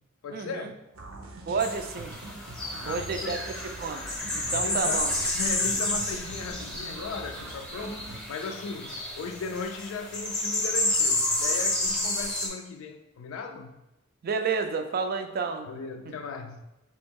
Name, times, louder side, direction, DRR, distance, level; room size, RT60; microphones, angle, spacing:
voice 1, 0.2-0.8 2.8-3.4 4.5-13.8 15.7-16.6, left 4 dB, 75° left, 5 dB, 0.3 m, -37 dB
sound 1, 0.9-8.2, right 2 dB, 85° right, 0.6 m, -43 dB
voice 2, 1.5-2.1 2.8-3.4 3.8-4.0 4.3-5.1 14.2-15.7, right 5 dB, 45° right, 7 dB, 0.4 m, -30 dB
sound 2, 1.6-12.5, left 1 dB, 5° left, 0.7 m, -30 dB
4.3 x 2.9 x 3.5 m, 0.95 s
head